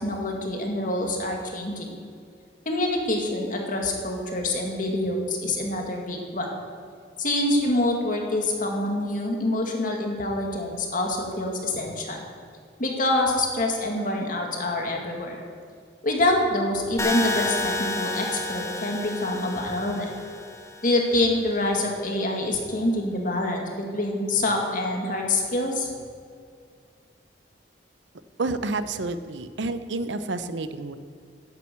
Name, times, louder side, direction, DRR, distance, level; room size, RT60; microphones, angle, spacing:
voice 1, 0.0-1.9 2.7-6.5 7.2-12.2 12.8-15.4 16.0-20.1 20.8-25.9, left 1 dB, 50° left, 1 dB, 2.1 m, -26 dB
sound 1, 17.0-21.0, left 2 dB, 15° left, 1.3 m, -30 dB
voice 2, 28.4-31.0, right 3 dB, 80° right, 12 dB, 0.7 m, -29 dB
11.0 x 9.0 x 7.6 m, 2.2 s
head